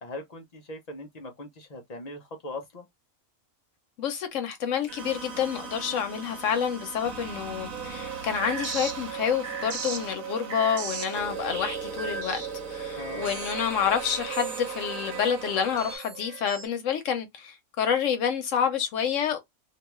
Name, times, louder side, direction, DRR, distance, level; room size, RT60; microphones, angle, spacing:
voice 1, 0.0-2.9 13.0-13.3, left 2 dB, 55° left, 0.4 m, -40 dB
voice 2, 4.0-12.4 12.7-19.4, left 8 dB, 75° left, 0.9 m, -28 dB
sound 1, 4.9-16.0, right 4 dB, 85° right, 1.1 m, -39 dB
sound 2, 7.7-16.7, right 7 dB, 60° right, 0.8 m, -37 dB
2.5 x 2.2 x 2.9 m
omnidirectional pair, 1.4 m